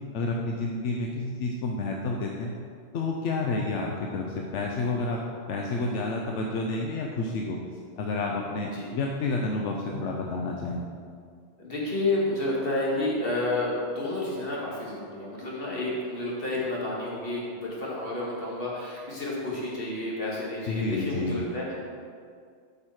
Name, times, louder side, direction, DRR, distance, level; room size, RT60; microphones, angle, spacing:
voice 1, 0.1-2.5 2.9-5.2 5.5-7.6 8.0-10.8 20.7-21.4, left 3 dB, 80° left, 0 dB, 1.0 m, -30 dB
voice 2, 11.6-21.7, left 2 dB, 50° left, -5 dB, 2.0 m, -30 dB
8.4 x 5.5 x 4.7 m, 2.2 s
omnidirectional pair, 1.2 m